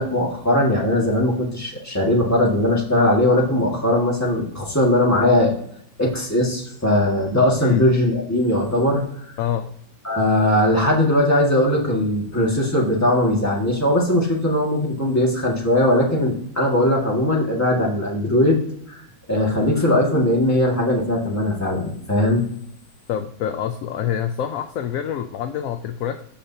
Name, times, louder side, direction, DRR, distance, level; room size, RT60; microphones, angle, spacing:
voice 1, 0.0-5.5 6.0-9.0 10.0-18.6 18.9-19.0 19.3-22.4, left 1 dB, 10° left, -3 dB, 1.7 m, -19 dB
voice 2, 9.4-9.7 23.1-26.2, left 9 dB, 70° left, 8 dB, 0.8 m, -26 dB
14.5 x 5.1 x 2.8 m, 0.66 s
omnidirectional pair, 1.9 m